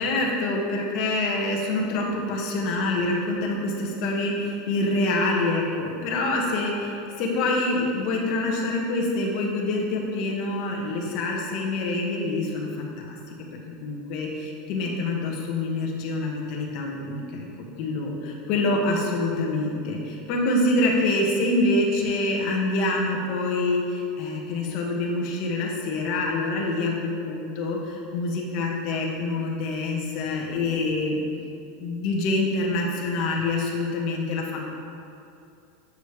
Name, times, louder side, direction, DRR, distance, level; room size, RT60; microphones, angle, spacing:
voice 1, 0.0-13.3 13.8-17.5 17.8-31.2 31.8-34.6, left 2 dB, 50° left, -1 dB, 1.3 m, -26 dB
8.5 x 6.5 x 3.3 m, 2.6 s
supercardioid pair, 145°, 0 cm